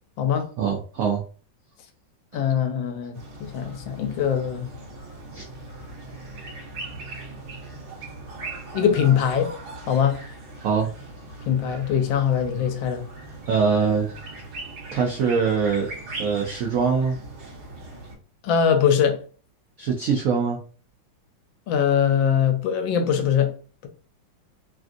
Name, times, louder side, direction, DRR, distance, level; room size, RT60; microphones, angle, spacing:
voice 1, 0.6-1.2 5.3-5.4 10.6-10.9 13.5-14.1 14.9-15.9 16.2-17.2 19.8-20.6, right 5 dB, 85° right, 0.7 m, -23 dB
voice 2, 2.3-4.7 8.7-9.5 9.9-10.2 11.5-13.0 18.4-19.2 21.7-23.5, left 8 dB, 85° left, 1.4 m, -22 dB
sound 1, 3.1-18.1, right 2 dB, 65° right, 1.5 m, -39 dB
3.3 x 2.4 x 2.5 m
omnidirectional pair, 2.0 m